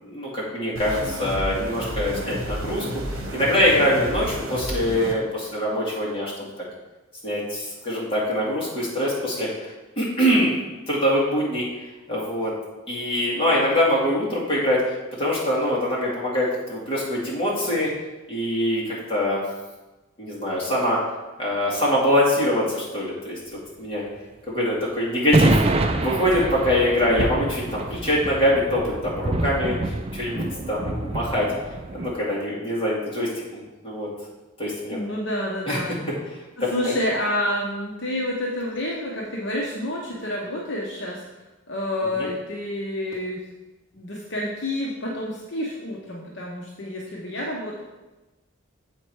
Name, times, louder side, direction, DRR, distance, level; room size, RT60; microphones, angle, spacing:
voice 1, 0.0-3.0 3.3-6.5 7.2-10.5 10.9-11.6 12.1-12.5 12.9-14.8 15.2-17.9 18.3-19.4 20.2-21.0 21.4-23.4 23.8-24.0 24.5-25.6 26.0-29.8 30.1-31.5 31.9-34.1 34.6-35.0 35.7-35.8 36.6-37.0 42.2-42.3, left 1 dB, 25° left, -6 dB, 2.3 m, -23 dB
sound 1, 0.8-5.1, equal, 80° right, 1.1 m, -31 dB
sound 2, 25.3-32.1, right 2 dB, 30° right, 0.4 m, -26 dB
voice 2, 34.9-36.0 36.6-41.2 41.7-43.4 43.9-47.8, left 1 dB, 60° left, -3 dB, 1.0 m, -29 dB
7.7 x 4.4 x 4.7 m, 1.1 s
head